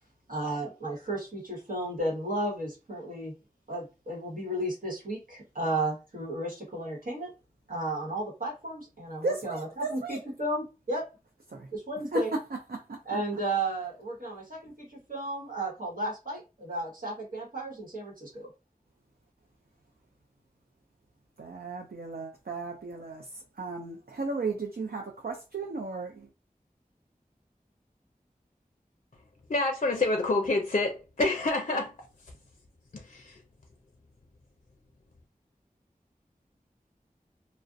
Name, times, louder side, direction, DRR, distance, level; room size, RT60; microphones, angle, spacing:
voice 1, 0.3-3.3 3.7-7.3 7.7-11.0 11.7-12.3 13.0-18.5, right 1 dB, 65° right, 1.1 m, -33 dB
voice 2, 9.2-10.2 11.5-11.7 12.1-12.2 21.4-23.2 23.6-26.3, right 3 dB, 80° right, 0.4 m, -35 dB
voice 3, 29.5-32.3 32.9-33.4, left 2 dB, 50° left, 0.4 m, -28 dB
2.4 x 2.1 x 2.5 m
wide cardioid pair, 40°, 15 cm